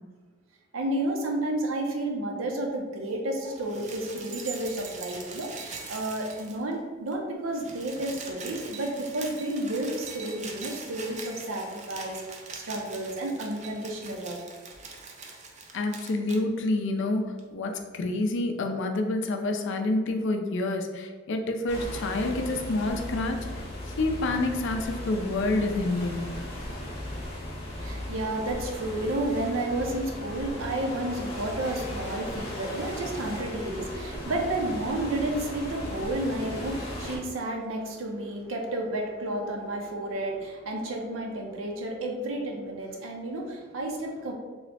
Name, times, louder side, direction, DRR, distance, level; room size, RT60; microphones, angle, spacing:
voice 1, 0.7-14.5 27.7-44.3, right 1 dB, 85° right, 1 dB, 0.6 m, -31 dB
sound 1, 3.5-6.8 7.1-7.2 7.4-16.4 17.4-17.5, right 4 dB, 35° right, 0.4 m, -42 dB
voice 2, 15.7-17.2 17.5-26.3, left 2 dB, 65° left, 4 dB, 0.4 m, -28 dB
sound 2, 21.7-37.2, left 1 dB, 30° left, 0.8 m, -37 dB
3.1 x 2.1 x 4.0 m, 1.5 s
head